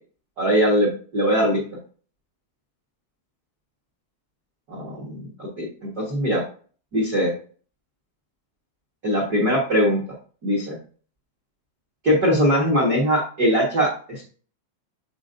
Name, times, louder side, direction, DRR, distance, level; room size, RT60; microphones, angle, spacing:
voice 1, 0.4-1.6 4.7-6.4 6.9-7.3 9.0-10.0 10.4-10.7 12.0-14.2, equal, 60° right, -1 dB, 1.0 m, -21 dB
8.4 x 4.4 x 2.6 m, 0.41 s
omnidirectional pair, 4.3 m